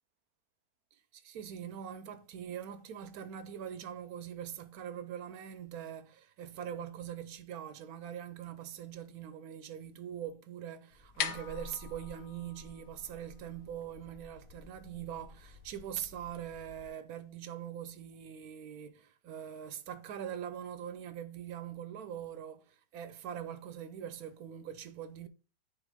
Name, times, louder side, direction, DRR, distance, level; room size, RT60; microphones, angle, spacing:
voice 1, 0.9-25.3, right 9 dB, 70° right, 1.0 m, -43 dB
sound 1, 10.9-16.9, left 7 dB, 60° left, 1.1 m, -44 dB
9.7 x 3.5 x 3.5 m
omnidirectional pair, 1.8 m